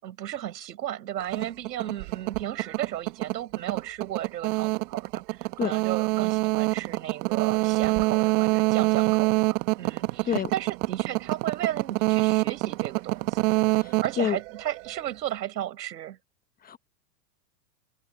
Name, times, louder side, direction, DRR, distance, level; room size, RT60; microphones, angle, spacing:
voice 1, 0.0-13.5 14.0-16.2, right 12 dB, 80° right, 5.4 m, -34 dB
sound 1, 1.2-15.1, right 25 dB, 45° right, 1.2 m, -26 dB
voice 2, 13.7-14.4 16.6-16.8, left 9 dB, 20° left, 1.0 m, -28 dB
hypercardioid pair, 130°, 49 cm